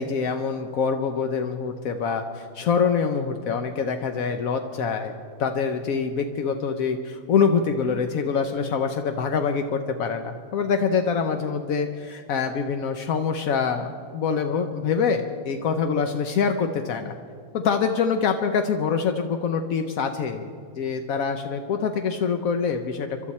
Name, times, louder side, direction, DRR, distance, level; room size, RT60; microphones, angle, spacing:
voice 1, 0.0-5.1 5.4-17.1 17.5-23.1, left 6 dB, 65° left, 6 dB, 0.9 m, -25 dB
26.5 x 12.0 x 4.2 m, 2.2 s
omnidirectional pair, 2.2 m